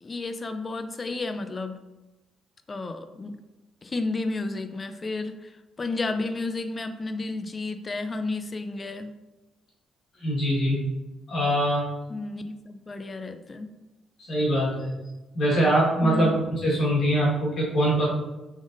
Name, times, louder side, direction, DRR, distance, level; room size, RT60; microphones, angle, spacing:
voice 1, 0.0-1.8 2.7-3.4 3.8-5.5 5.8-9.1 12.1-13.7 16.0-16.3, left 3 dB, 30° left, 9 dB, 0.3 m, -32 dB
voice 2, 10.2-10.8 11.3-11.9 14.3-14.9 15.3-18.1, right 1 dB, 60° left, -6 dB, 1.4 m, -23 dB
3.9 x 3.5 x 2.5 m, 1.1 s
cardioid pair, 90°, 0 cm